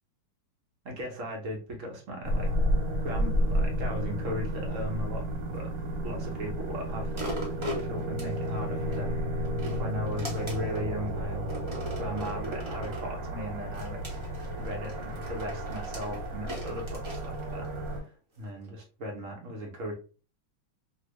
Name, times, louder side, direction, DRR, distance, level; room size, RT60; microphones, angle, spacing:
voice 1, 0.8-2.5 3.0-5.3 5.5-5.7 6.0-7.3 7.7-9.1 9.7-11.6 12.0-14.0 14.6-17.7 18.0-19.9, equal, 50° right, 0 dB, 1.0 m, -38 dB
sound 1, 2.2-18.0, equal, 70° right, 1.6 m, -32 dB
sound 2, 7.1-9.0 9.4-10.9 11.5-13.1 13.7-17.9 18.4-18.5, equal, 35° right, 0.4 m, -40 dB
2.9 x 2.7 x 3.0 m, 0.36 s
omnidirectional pair, 2.1 m